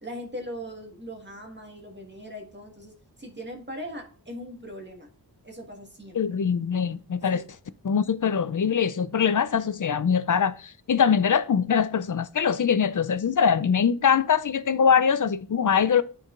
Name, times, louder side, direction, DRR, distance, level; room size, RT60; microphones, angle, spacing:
voice 1, 0.0-5.1 5.4-6.2 7.3-7.4, equal, 25° right, 1.6 m, -40 dB
voice 2, 6.1-7.4 7.8-16.0, left 7 dB, 50° left, 0.5 m, -23 dB
12.0 x 4.5 x 2.5 m
wide cardioid pair, 75°, 42 cm